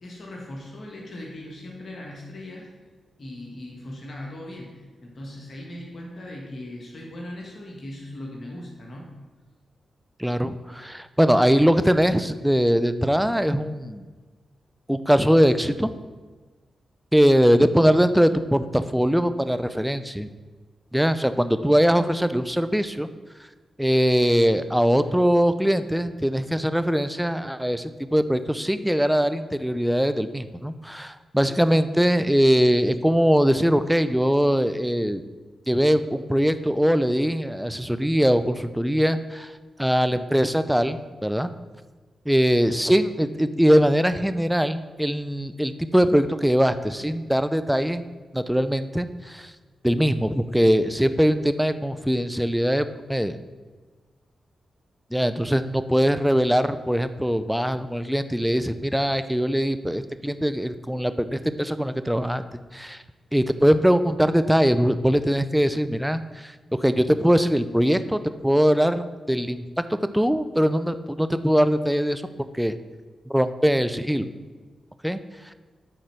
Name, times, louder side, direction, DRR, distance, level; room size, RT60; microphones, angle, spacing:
voice 1, 0.0-2.7 3.2-9.1 55.4-55.5, left 1 dB, 55° left, -1 dB, 1.5 m, -39 dB
voice 2, 10.2-14.0 14.9-15.9 17.1-20.3 20.9-23.1 23.8-35.2 35.7-39.5 39.8-41.5 42.3-48.1 48.3-49.5 49.8-53.4 55.1-63.0 63.3-66.5 66.8-68.2 68.4-69.6 70.1-72.2 72.5-72.8 73.3-74.3 75.0-75.2, equal, 5° right, 11 dB, 0.6 m, -21 dB
9.3 x 4.3 x 5.7 m, 1.3 s
supercardioid pair, 45°, 0 cm